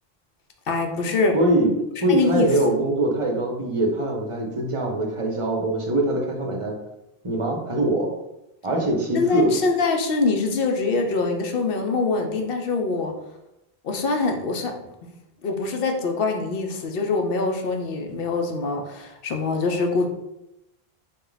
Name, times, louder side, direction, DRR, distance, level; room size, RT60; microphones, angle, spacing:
voice 1, 0.7-1.4 2.1-2.5 9.1-13.1 13.8-14.7 15.0-15.1 15.4-20.1, left 3 dB, 65° left, 4 dB, 0.8 m, -24 dB
voice 2, 1.3-1.7 2.0-6.8 7.2-8.1 8.6-9.6, right 1 dB, 35° right, 0 dB, 0.7 m, -23 dB
4.0 x 2.3 x 3.9 m, 0.89 s
omnidirectional pair, 1.1 m